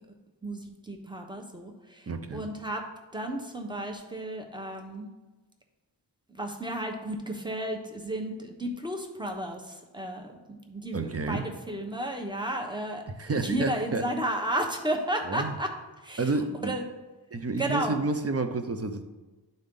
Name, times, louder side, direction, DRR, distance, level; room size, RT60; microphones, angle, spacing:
voice 1, 0.4-2.8 3.1-5.1 6.3-13.0 13.4-15.7 16.0-16.8 17.6-18.0, right 1 dB, 10° right, 2 dB, 1.0 m, -33 dB
voice 2, 2.1-2.5 10.9-11.4 13.2-14.0 15.3-15.5 16.2-16.8 17.3-19.0, right 3 dB, 30° right, 7 dB, 0.7 m, -30 dB
11.0 x 3.9 x 3.7 m, 1.2 s
wide cardioid pair, 80°, 46 cm